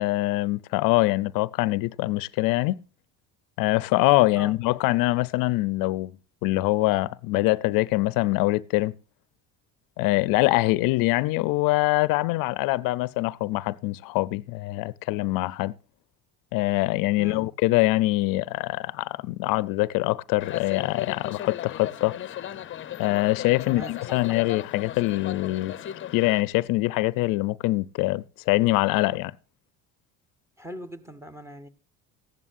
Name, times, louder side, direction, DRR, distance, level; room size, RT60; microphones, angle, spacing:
voice 1, 0.0-2.8 3.6-6.2 6.4-8.9 10.0-15.7 16.5-22.2 23.0-25.7 26.1-29.3, left 19 dB, 80° left, 0.6 m, -24 dB
voice 2, 17.2-17.5 23.6-24.0 30.6-31.7, equal, 10° right, 1.3 m, -40 dB
sound 1, 20.4-26.4, left 11 dB, 35° left, 0.7 m, -36 dB
15.0 x 11.0 x 2.5 m
cardioid pair, 120°, 33 cm